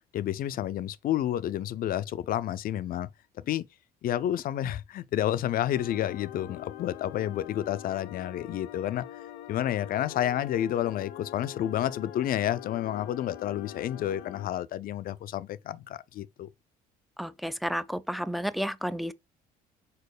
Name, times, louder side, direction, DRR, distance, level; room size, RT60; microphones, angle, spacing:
voice 1, 0.1-3.1 3.4-3.7 4.0-9.0 9.5-16.5, left 11 dB, 60° left, 0.6 m, -30 dB
sound 1, 5.7-14.5, left 12 dB, 90° left, 0.9 m, -44 dB
voice 2, 17.2-19.1, equal, ahead, 0.4 m, -31 dB
4.6 x 4.4 x 4.9 m
cardioid pair, 110°, 17 cm